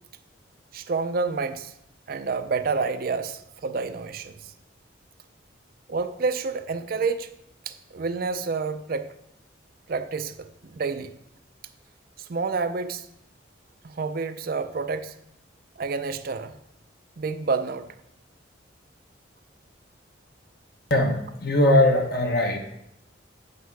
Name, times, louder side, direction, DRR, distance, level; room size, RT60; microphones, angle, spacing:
voice 1, 0.7-1.7 2.1-4.5 5.9-7.4 7.7-9.1 9.9-11.1 12.2-13.1 13.8-15.2 15.8-16.6 17.2-17.9, right 4 dB, 50° right, 0.4 m, -29 dB
voice 2, 20.9-22.6, left 1 dB, 55° left, 1.2 m, -20 dB
8.3 x 5.6 x 4.7 m
head